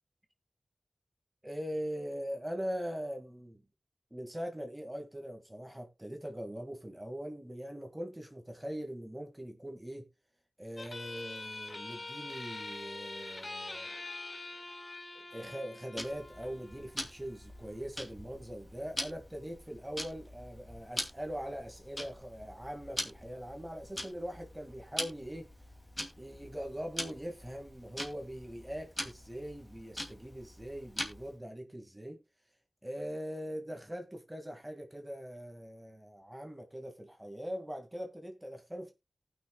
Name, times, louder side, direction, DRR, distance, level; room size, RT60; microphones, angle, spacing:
voice 1, 1.4-3.6 4.1-10.1 10.6-13.9 15.1-25.5 26.2-32.2 32.8-38.9, equal, 15° right, 1.8 m, -41 dB
sound 1, 10.8-17.8, left 2 dB, 55° left, 1.7 m, -45 dB
Tick-tock, 16.0-31.4, left 1 dB, 20° left, 2.4 m, -43 dB
18.5 x 6.2 x 2.2 m
wide cardioid pair, 60°, 0 cm